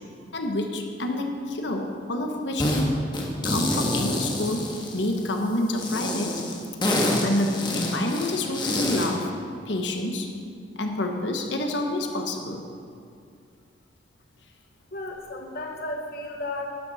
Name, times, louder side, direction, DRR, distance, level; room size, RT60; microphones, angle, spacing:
voice 1, 0.3-2.9 3.3-4.7 4.9-6.3 7.2-9.3 9.7-10.3 10.8-12.6, left 1 dB, 75° left, 3 dB, 1.2 m, -28 dB
sound 1, 2.6-2.8 3.1-5.3 5.8-9.2, left 1 dB, 25° left, 1.6 m, -27 dB
voice 2, 14.9-16.7, left 2 dB, 55° left, 1 dB, 1.1 m, -34 dB
13.0 x 12.0 x 4.2 m, 2.3 s
head